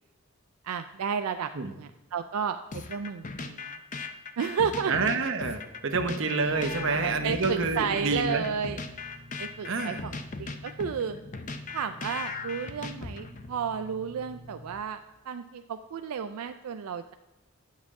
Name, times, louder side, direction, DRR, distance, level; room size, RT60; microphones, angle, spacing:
voice 1, 0.6-2.6 2.9-3.6 4.4-4.9 6.5-8.9 9.4-10.1 10.4-11.2 11.7-17.1, right 6 dB, 90° right, 8 dB, 0.4 m, -32 dB
sound 1, 2.7-13.5, left 4 dB, 35° left, 0.5 m, -38 dB
voice 2, 4.9-8.4 9.6-10.0, right 3 dB, 60° right, 5 dB, 0.9 m, -28 dB
sound 2, 6.4-14.8, left 1 dB, 10° right, 2.6 m, -48 dB
8.5 x 7.3 x 3.6 m, 1.0 s
head